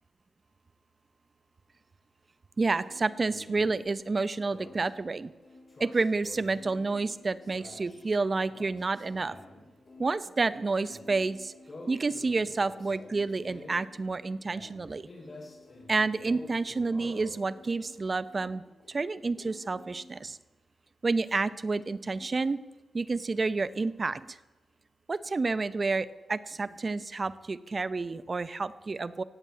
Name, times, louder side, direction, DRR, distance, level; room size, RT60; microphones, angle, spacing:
voice 1, 2.6-5.3 5.8-9.4 10.0-11.5 11.9-15.1 15.9-18.6 18.9-20.4 21.0-22.6 22.9-24.4 25.1-29.2, right 3 dB, 40° right, 16 dB, 0.8 m, -29 dB
sound 1, 2.7-20.1, left 2 dB, 40° left, 6.0 m, -50 dB
17.0 x 8.3 x 8.3 m, 1.2 s
cardioid pair, 70°, 0 cm